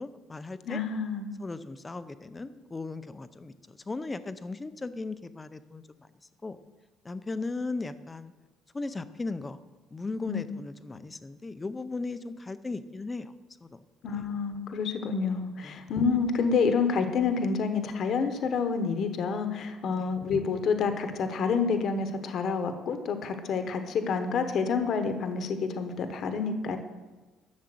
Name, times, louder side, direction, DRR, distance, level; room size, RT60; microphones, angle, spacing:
voice 1, 0.0-0.8 1.4-6.1 6.4-6.6 7.0-8.3 8.7-9.6 9.9-13.3 13.6-13.8 15.6-15.8 19.9-20.1, left 3 dB, 15° left, 12 dB, 0.5 m, -37 dB
voice 2, 0.6-1.3 10.3-10.4 14.0-26.8, left 5 dB, 45° left, 8 dB, 1.0 m, -28 dB
11.5 x 7.1 x 7.7 m, 1.2 s
cardioid pair, 170°, 0 cm